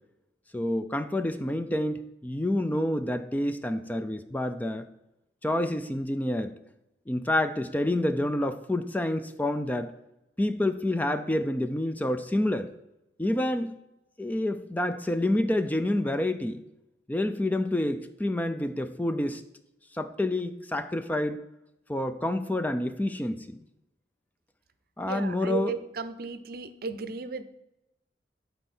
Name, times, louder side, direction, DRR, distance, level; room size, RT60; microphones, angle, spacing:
voice 1, 0.5-4.9 5.4-6.5 7.1-9.9 10.4-12.7 13.2-13.8 14.2-16.6 17.1-19.4 19.9-21.4 21.9-23.6 25.0-25.7, left 1 dB, 10° left, 9 dB, 0.4 m, -28 dB
voice 2, 25.1-27.4, right 5 dB, 60° right, 12 dB, 0.6 m, -34 dB
11.0 x 4.5 x 4.3 m, 0.91 s
head